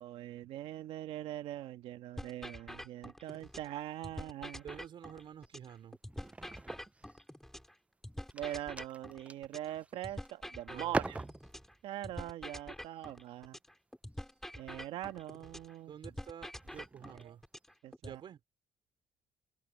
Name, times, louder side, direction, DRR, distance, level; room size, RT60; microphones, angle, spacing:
voice 1, 0.0-4.6 8.3-11.2 11.8-13.6 14.6-15.9 17.2-17.3 17.8-18.2, right 13 dB, 85° right, 1.7 m, -42 dB
sound 1, 2.2-3.7 4.0-7.7 8.0-11.7 12.0-15.7 16.0-18.2, left 1 dB, 5° left, 4.2 m, -46 dB
sound 2, 3.3-4.0 4.5-4.8 5.2-7.6 8.0-10.4 10.8-11.9 12.8-13.0 14.2-14.4 15.2-15.5 16.0-16.1 16.4-17.5, right 2 dB, 15° right, 0.5 m, -43 dB
voice 2, 4.6-6.0 10.7-11.2 15.9-17.4 18.0-18.4, right 9 dB, 60° right, 3.4 m, -49 dB
cardioid pair, 80°, 9 cm